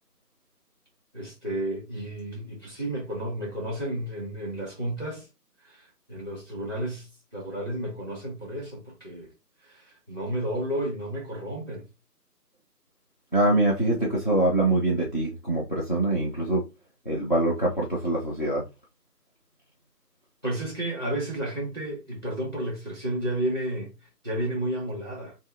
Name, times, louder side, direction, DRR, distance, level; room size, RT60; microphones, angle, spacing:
voice 1, 1.1-5.3 5.6-7.1 7.3-9.3 9.6-11.8 20.4-23.9 24.2-25.3, right 1 dB, 15° left, 1.4 m, -32 dB
voice 2, 13.3-16.6 17.1-18.6, right 2 dB, 30° left, 0.8 m, -24 dB
6.4 x 2.8 x 2.6 m
figure-of-eight pair, 165°, 48 cm